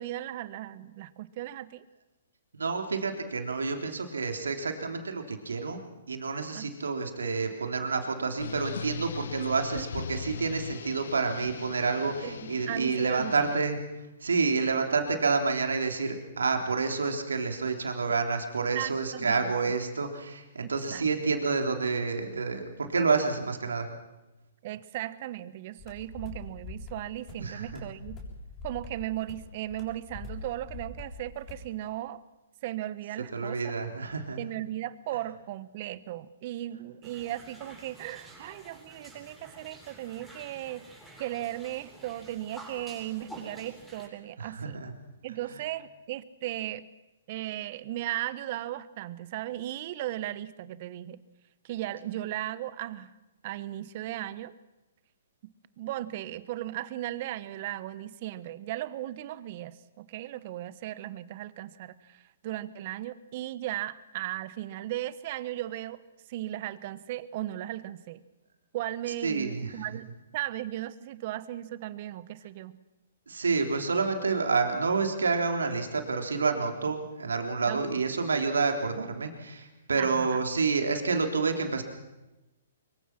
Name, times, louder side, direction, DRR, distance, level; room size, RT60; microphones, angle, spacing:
voice 1, 0.0-1.8 6.5-6.7 9.7-9.9 12.2-13.5 18.7-19.7 20.6-21.1 24.6-28.2 28.6-32.2 32.6-33.6 34.4-40.8 41.2-44.8 45.2-46.9 47.3-51.2 51.6-53.1 53.4-54.5 55.8-66.0 66.3-68.2 68.7-70.1 70.3-72.7 77.7-78.0 80.0-80.4, right 14 dB, 45° right, 16 dB, 1.2 m, -36 dB
voice 2, 2.5-5.8 6.1-13.8 14.2-23.9 27.4-27.9 33.3-34.4 44.4-44.9 69.2-69.8 73.3-81.8, right 4 dB, 80° right, 4 dB, 3.5 m, -29 dB
sound 1, 8.4-13.7, left 6 dB, 70° left, 1.0 m, -39 dB
sound 2, 25.8-31.7, left 3 dB, 25° left, 7.5 m, -44 dB
sound 3, 37.0-44.1, right 1 dB, ahead, 7.9 m, -49 dB
24.5 x 23.5 x 6.1 m, 1.0 s
hypercardioid pair, 130°, 0 cm